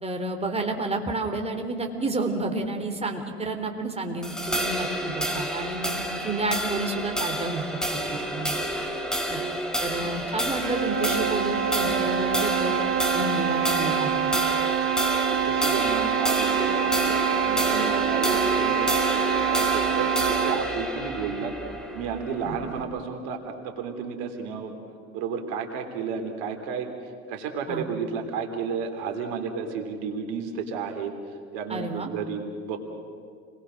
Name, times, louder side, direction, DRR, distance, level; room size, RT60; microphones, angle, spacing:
voice 1, 0.0-7.6 8.3-8.6 9.3-9.4 9.8-12.8 13.1-14.3 22.4-22.5 27.7-27.9 31.7-32.1, right 2 dB, 20° right, 3 dB, 3.9 m, -30 dB
sound 1, 4.2-22.8, equal, ahead, 5.3 m, -29 dB
voice 2, 7.9-8.5 10.0-10.1 15.3-20.1 20.4-21.5 21.9-24.8 25.1-32.9, right 6 dB, 75° right, 5 dB, 3.3 m, -32 dB
sound 2, 10.5-20.8, right 10 dB, 40° right, 1.9 m, -26 dB
29.5 x 21.0 x 6.4 m, 2.3 s
hypercardioid pair, 75°, 32 cm